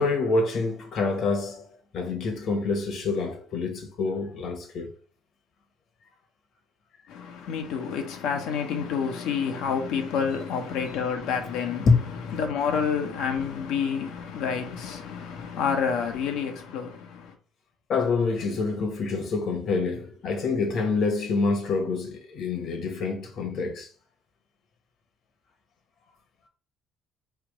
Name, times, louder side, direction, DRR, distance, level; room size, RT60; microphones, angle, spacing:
voice 1, 0.0-1.7 1.9-4.9 11.9-12.0 17.9-23.9, left 4 dB, 60° left, 1.4 m, -26 dB
voice 2, 7.1-17.3, left 6 dB, 75° left, 1.0 m, -29 dB
3.6 x 2.9 x 4.8 m
supercardioid pair, 80°, 0 cm